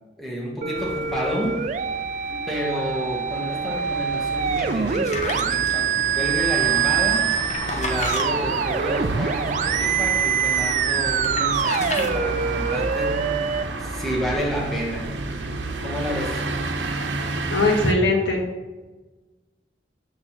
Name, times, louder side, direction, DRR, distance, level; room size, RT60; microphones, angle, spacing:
voice 1, 0.2-1.6 2.5-7.3 7.7-13.3 13.8-15.1 15.8-16.4, equal, ahead, -4 dB, 1.3 m, -30 dB
sound 1, 0.6-13.6, right 7 dB, 40° right, 0.3 m, -25 dB
sound 2, 0.7-17.9, right 2 dB, 90° right, 0.8 m, -31 dB
sound 3, 4.5-5.7 7.1-8.3 10.5-10.7 11.1-12.1, left 3 dB, 40° left, 0.8 m, -32 dB
voice 2, 17.5-18.4, left 2 dB, 75° left, 1 dB, 1.2 m, -20 dB
6.9 x 6.4 x 3.2 m, 1.2 s
head